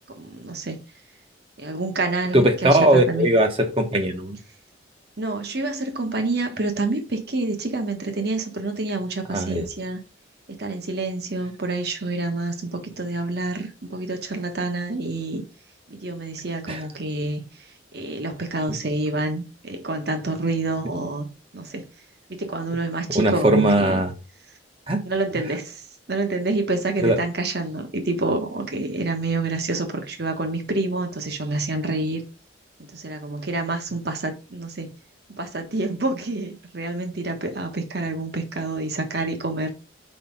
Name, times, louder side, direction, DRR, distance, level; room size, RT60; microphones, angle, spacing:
voice 1, 0.1-0.8 1.6-3.3 5.2-10.0 10.5-15.4 15.9-17.4 17.9-21.3 21.5-21.8 22.3-24.1 25.0-25.8 26.1-32.2 32.8-34.9 35.4-39.7, right 2 dB, 55° right, 1.2 m, -28 dB
voice 2, 2.3-4.4 9.3-9.7 16.7-16.8 23.1-24.1 24.9-25.0 27.0-27.2, right 1 dB, 30° right, 0.8 m, -19 dB
4.7 x 4.3 x 5.3 m
head